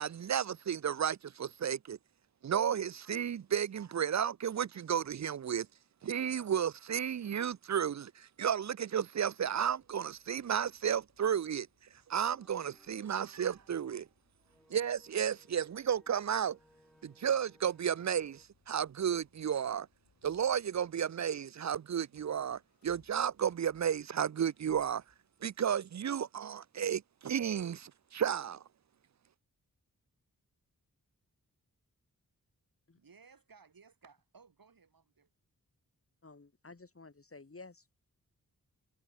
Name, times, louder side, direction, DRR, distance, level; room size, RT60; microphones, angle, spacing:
voice 1, 0.0-2.0 2.4-5.7 6.0-11.7 12.1-14.1 14.7-16.6 17.0-19.9 20.2-25.0 25.4-28.6, right 8 dB, 50° right, 0.5 m, -33 dB
sound 1, 9.4-21.5 21.9-25.8, left 5 dB, 70° left, 6.9 m, -72 dB
sound 2, 12.1-18.5, equal, ahead, 4.4 m, -66 dB
voice 2, 33.0-35.3, right 5 dB, 70° right, 5.7 m, -60 dB
voice 3, 36.2-37.9, left 3 dB, 40° left, 3.8 m, -52 dB
wide cardioid pair, 70°, 36 cm